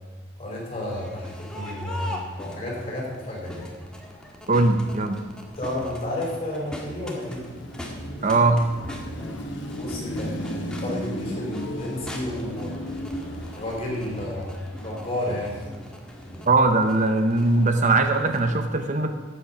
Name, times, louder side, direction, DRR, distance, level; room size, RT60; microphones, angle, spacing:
voice 1, 0.4-3.7 5.5-7.4 9.1-9.4 9.8-12.7 13.5-15.7, left 1 dB, 30° left, -3 dB, 4.6 m, -32 dB
Crowd, 0.8-18.5, equal, 5° left, 1.7 m, -40 dB
voice 2, 4.5-5.2 8.2-8.6 16.5-19.1, right 3 dB, 40° right, 7 dB, 0.8 m, -20 dB
Car passing by / Traffic noise roadway noise / Engine, 7.2-14.6, left 1 dB, 80° left, 1.3 m, -35 dB
13.5 x 8.7 x 5.8 m, 1.4 s
head